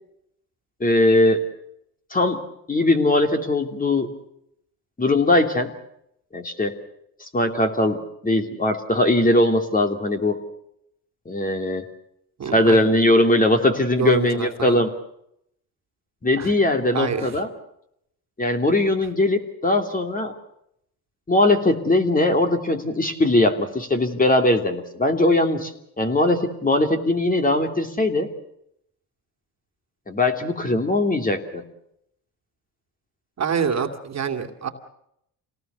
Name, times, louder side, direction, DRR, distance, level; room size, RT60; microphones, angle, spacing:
voice 1, 0.8-1.4 2.1-2.4 2.7-4.1 5.0-5.7 6.3-6.8 7.2-10.4 11.3-11.9 12.5-14.9 16.2-17.5 18.4-20.3 21.3-28.3 30.1-31.6, left 1 dB, 20° left, 5 dB, 2.9 m, -20 dB
voice 2, 12.4-12.9 14.0-14.8 16.4-16.5 16.9-17.3 33.4-34.7, right 7 dB, 40° right, 5 dB, 2.6 m, -26 dB
27.0 x 18.5 x 6.9 m, 0.75 s
cardioid pair, 95°, 41 cm